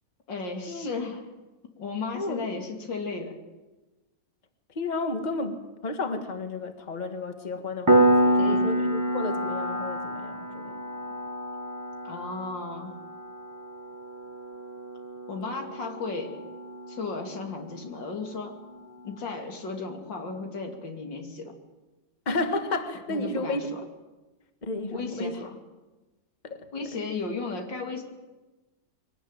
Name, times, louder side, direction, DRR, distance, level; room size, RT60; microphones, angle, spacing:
voice 1, 0.3-1.3 1.8-3.4 8.4-8.7 12.0-12.9 15.3-16.4 16.9-18.6 19.0-21.5 23.1-23.6 24.9-25.6 26.7-28.0, left 4 dB, 85° left, 3 dB, 3.4 m, -35 dB
voice 2, 2.1-2.5 4.8-10.8 22.3-23.6 24.6-25.4 26.4-27.0, left 2 dB, 25° left, 7 dB, 1.6 m, -32 dB
Piano, 7.9-18.3, right 1 dB, 10° right, 1.0 m, -28 dB
22.5 x 18.5 x 9.0 m, 1.1 s
omnidirectional pair, 1.9 m